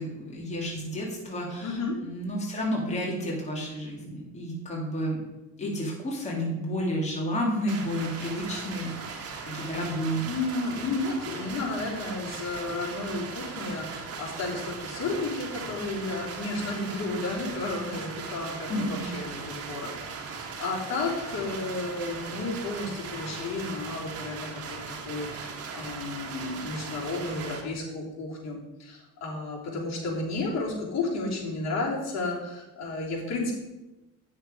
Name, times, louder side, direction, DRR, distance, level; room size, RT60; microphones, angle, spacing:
voice 1, 0.0-5.2 5.6-9.1 9.4-10.3 18.7-19.1, equal, 20° left, -3 dB, 2.4 m, -31 dB
voice 2, 1.6-2.0 9.4-9.6 10.2-33.5, left 3 dB, 55° left, -3 dB, 3.3 m, -32 dB
sound 1, 7.7-27.6, right 5 dB, 50° right, 1.7 m, -39 dB
9.2 x 6.6 x 5.0 m, 1.0 s
cardioid pair, 110°, 32 cm